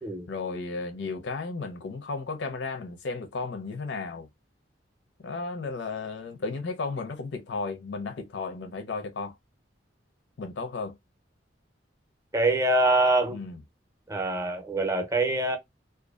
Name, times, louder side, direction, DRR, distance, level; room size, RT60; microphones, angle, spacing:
voice 1, 0.3-4.3 5.2-9.3 10.4-11.0 13.3-13.6, left 4 dB, 75° left, 0.5 m, -34 dB
voice 2, 12.3-13.4 14.1-15.6, right 2 dB, 15° right, 0.6 m, -24 dB
2.5 x 2.3 x 2.3 m
head